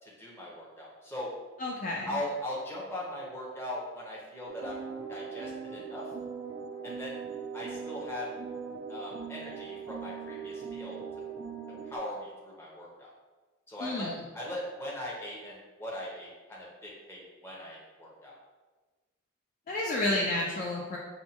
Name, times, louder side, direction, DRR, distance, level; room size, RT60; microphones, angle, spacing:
voice 1, 0.0-1.3 2.1-4.8 5.1-6.1 6.8-7.2 7.5-8.3 8.9-11.0 11.8-13.1 13.7-18.3, left 1 dB, 10° left, -5 dB, 0.7 m, -39 dB
voice 2, 1.6-2.1 13.8-14.2 19.7-21.0, left 2 dB, 40° left, -3 dB, 0.3 m, -30 dB
sound 1, 4.5-12.0, right 6 dB, 50° right, 0.3 m, -40 dB
5.5 x 2.2 x 2.7 m, 1.3 s
head